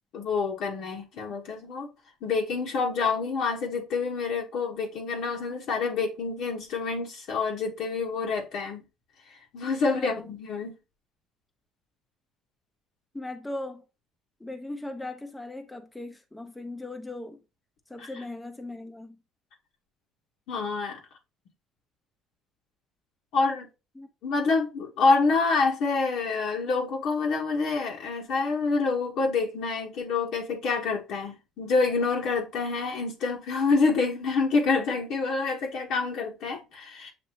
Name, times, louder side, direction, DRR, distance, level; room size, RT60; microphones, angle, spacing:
voice 1, 0.1-1.9 2.2-8.8 9.3-10.7 18.0-18.1 20.5-21.0 23.3-23.7 24.2-37.1, left 4 dB, 70° left, 1.1 m, -27 dB
voice 2, 10.0-10.3 13.1-13.8 14.4-17.4 17.9-19.2 23.9-24.1, left 2 dB, 10° left, 0.7 m, -38 dB
7.0 x 2.6 x 2.8 m
supercardioid pair, 90°, 0 cm